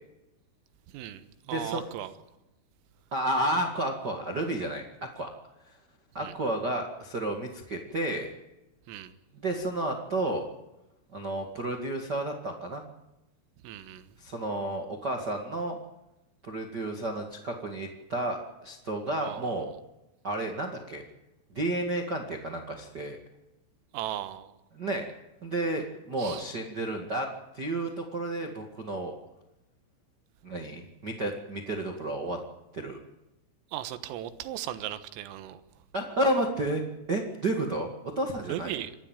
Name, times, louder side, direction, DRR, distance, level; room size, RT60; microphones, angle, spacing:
voice 1, 0.9-2.2 6.2-6.3 8.9-9.2 13.6-14.2 19.2-19.8 23.9-24.5 26.2-26.5 33.7-35.6 38.4-39.0, right 12 dB, 90° right, 4.0 m, -37 dB
voice 2, 1.5-1.8 3.1-5.3 5.7-5.8 6.1-8.3 9.3-10.5 11.1-12.8 14.2-15.8 16.4-19.7 20.2-21.0 21.5-23.2 24.7-25.0 25.4-29.1 30.4-32.4 32.7-33.0 35.9-36.8 37.1-38.8, right 1 dB, 70° right, 0.9 m, -31 dB
28.0 x 13.0 x 9.1 m
omnidirectional pair, 5.8 m